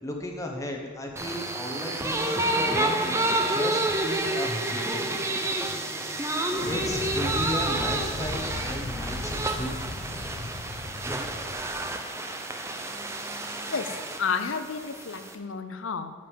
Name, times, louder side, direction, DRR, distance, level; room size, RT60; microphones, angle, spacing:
voice 1, 0.0-5.2 6.7-9.8 11.5-11.6, left 1 dB, 15° left, 1 dB, 1.1 m, -35 dB
sound 1, 1.2-15.3, right 2 dB, 15° right, 0.6 m, -29 dB
Explosion, 6.5-12.0, left 2 dB, 40° left, 0.4 m, -36 dB
voice 2, 14.2-16.1, left 5 dB, 75° left, 9 dB, 0.7 m, -31 dB
10.5 x 5.3 x 7.2 m, 1.5 s
head